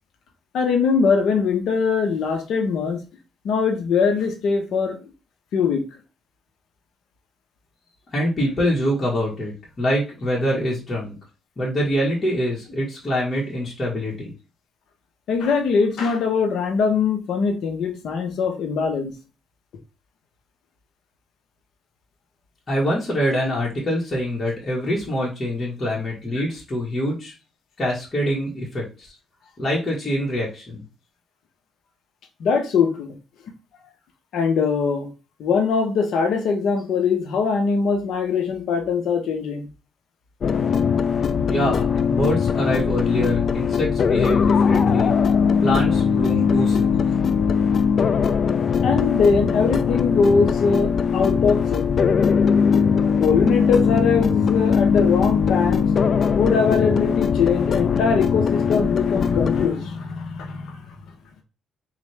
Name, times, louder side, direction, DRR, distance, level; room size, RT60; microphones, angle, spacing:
voice 1, 0.5-3.0 3.4-5.0 5.5-5.8 15.3-19.1 32.4-33.1 34.3-35.1 35.4-39.7 48.8-51.9 53.2-60.8, left 5 dB, 75° left, 5 dB, 0.8 m, -22 dB
voice 2, 8.1-11.1 11.6-14.3 22.7-27.3 27.8-29.1 29.6-30.8 41.5-45.1 45.6-47.0, equal, 35° left, -5 dB, 1.4 m, -25 dB
sound 1, 40.4-59.7, left 6 dB, 50° left, 0.3 m, -20 dB
4.0 x 2.5 x 3.3 m, 0.32 s
cardioid pair, 90°, 0 cm